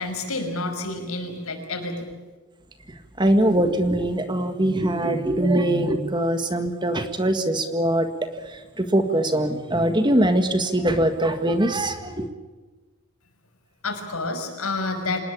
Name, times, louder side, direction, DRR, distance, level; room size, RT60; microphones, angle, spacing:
voice 1, 0.0-2.1 13.8-15.2, left 2 dB, 75° left, 5 dB, 5.8 m, -29 dB
voice 2, 2.9-12.3, right 1 dB, 20° right, 8 dB, 1.7 m, -22 dB
26.5 x 20.0 x 8.6 m, 1.3 s
head